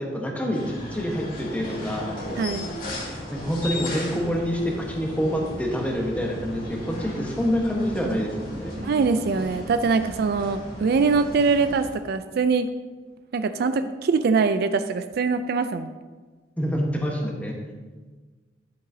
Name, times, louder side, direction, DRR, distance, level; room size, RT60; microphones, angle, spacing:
voice 1, 0.0-2.1 3.3-8.7 16.6-17.5, equal, 10° left, 0 dB, 1.2 m, -27 dB
sound 1, 0.5-11.9, left 1 dB, 50° left, 2.0 m, -36 dB
voice 2, 2.4-2.7 8.8-12.7 13.3-15.9, right 4 dB, 60° right, 11 dB, 0.4 m, -23 dB
10.5 x 7.8 x 2.7 m, 1.3 s
head